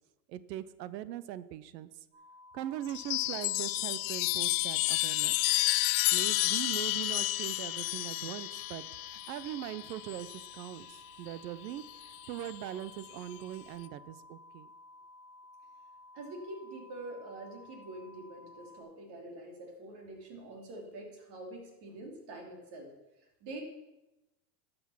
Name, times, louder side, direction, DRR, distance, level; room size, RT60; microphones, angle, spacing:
voice 1, 0.3-1.9 2.5-5.5 6.1-10.3 10.5-14.7, right 12 dB, 80° right, 16 dB, 0.8 m, -41 dB
sound 1, 2.1-18.8, left 2 dB, 25° right, 3.4 m, -55 dB
Chime, 2.9-10.7 11.9-12.5, left 19 dB, 45° left, 0.5 m, -31 dB
voice 2, 16.1-22.9 23.4-23.6, right 2 dB, 50° right, 1 dB, 3.4 m, -45 dB
12.0 x 6.4 x 5.9 m, 0.99 s
hypercardioid pair, 105°, 49 cm